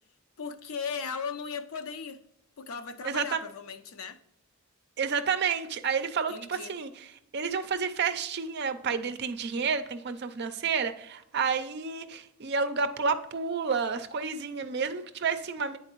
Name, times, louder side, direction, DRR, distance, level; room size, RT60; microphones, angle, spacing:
voice 1, 0.4-2.2 2.6-4.2 6.3-6.7, left 5 dB, 80° left, 0.5 m, -37 dB
voice 2, 3.0-3.4 5.0-6.9 7.3-15.8, right 5 dB, 50° right, 0.5 m, -30 dB
9.5 x 4.2 x 3.0 m
head